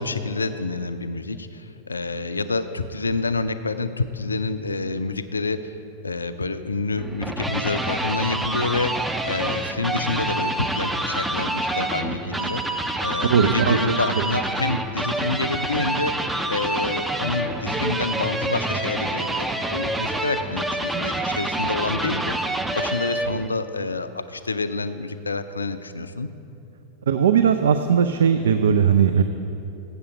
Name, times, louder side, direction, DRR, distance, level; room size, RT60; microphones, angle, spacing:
voice 1, 0.0-5.8 6.0-12.6 13.0-22.4 22.7-26.3, left 3 dB, 80° left, 12 dB, 0.4 m, -28 dB
sound 1, 7.0-23.5, right 2 dB, 5° right, 0.5 m, -27 dB
voice 2, 13.3-13.9 27.1-29.2, right 7 dB, 65° right, 9 dB, 0.3 m, -18 dB
8.0 x 7.0 x 6.6 m, 2.8 s
figure-of-eight pair, 90°, 0 cm